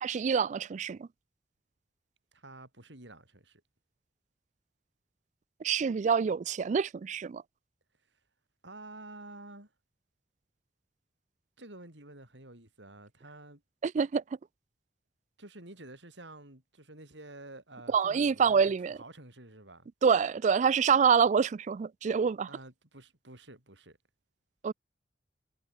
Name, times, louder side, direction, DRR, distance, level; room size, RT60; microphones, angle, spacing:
voice 1, 0.0-1.1 5.6-7.4 13.8-14.2 17.9-19.0 20.0-22.5 24.6-24.7, right 6 dB, 40° right, 0.3 m, -26 dB
voice 2, 2.3-3.6 8.6-9.7 11.6-13.6 15.4-19.9 22.5-24.0, right 2 dB, 80° right, 7.1 m, -50 dB
head